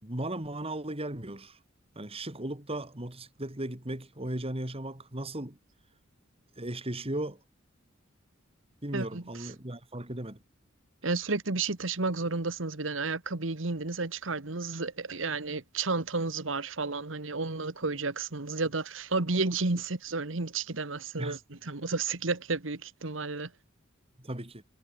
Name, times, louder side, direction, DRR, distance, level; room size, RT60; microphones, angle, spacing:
voice 1, 0.0-1.6 1.9-5.6 6.6-7.4 8.8-10.4 21.2-21.4 24.2-24.6, right 1 dB, 30° right, 3.2 m, -36 dB
voice 2, 8.9-9.5 11.0-23.5, right 3 dB, 70° right, 1.6 m, -32 dB
head